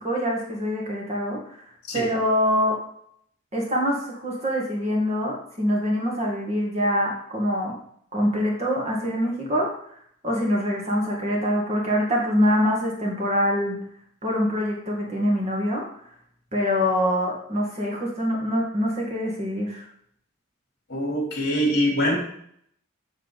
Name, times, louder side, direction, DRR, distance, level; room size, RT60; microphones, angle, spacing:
voice 1, 0.0-2.8 3.5-7.7 8.1-10.0 10.2-13.8 14.2-16.1 16.5-19.8, equal, 30° right, -1 dB, 1.9 m, -25 dB
voice 2, 20.9-22.2, equal, 50° left, -2 dB, 3.4 m, -23 dB
7.3 x 7.1 x 4.1 m, 0.67 s
head